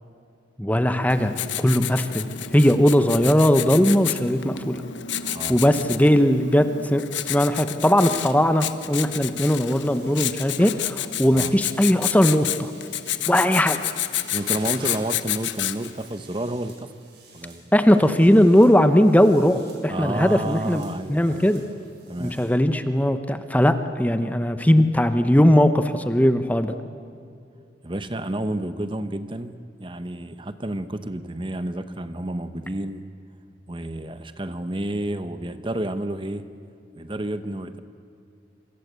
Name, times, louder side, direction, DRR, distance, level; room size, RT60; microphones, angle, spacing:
voice 1, 0.6-4.8 5.5-12.7 13.3-13.8 17.7-20.8 21.1-21.6 22.2-26.7, equal, 10° left, 9 dB, 0.9 m, -19 dB
Writing, 1.1-16.0, left 11 dB, 75° left, 1.2 m, -30 dB
sound 1, 9.3-22.5, right 2 dB, 65° right, 7.5 m, -49 dB
voice 2, 14.3-17.0 17.3-17.7 19.9-21.6 22.1-22.4 27.8-33.0 33.7-36.5 36.9-37.8, right 1 dB, 25° right, 11 dB, 0.9 m, -30 dB
27.0 x 26.0 x 8.2 m, 2.5 s
head